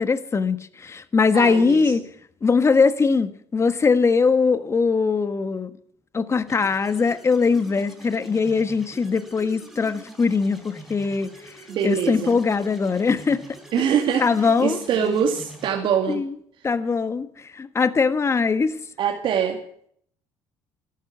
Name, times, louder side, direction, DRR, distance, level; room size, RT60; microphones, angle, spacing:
voice 1, 0.0-2.0 2.4-5.7 6.1-11.5 11.8-13.4 14.2-14.8 16.1-16.3 16.6-18.8, left 4 dB, 30° left, 1.4 m, -21 dB
voice 2, 1.3-2.0 11.7-12.4 13.7-16.2 19.0-19.6, right 8 dB, 60° right, 2.3 m, -24 dB
sound 1, 6.5-15.7, equal, ahead, 4.1 m, -44 dB
13.0 x 12.0 x 7.9 m
supercardioid pair, 90°, 9 cm